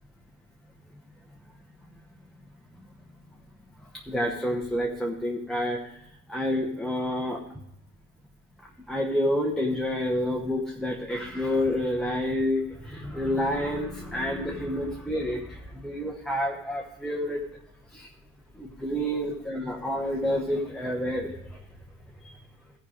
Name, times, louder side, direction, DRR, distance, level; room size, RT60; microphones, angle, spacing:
voice 1, 4.1-7.4 8.9-17.4 17.9-18.1 18.6-21.6 22.2-22.4, left 1 dB, ahead, -1 dB, 1.0 m, -29 dB
14.0 x 5.2 x 4.9 m, 0.78 s
cardioid pair, 115°, 29 cm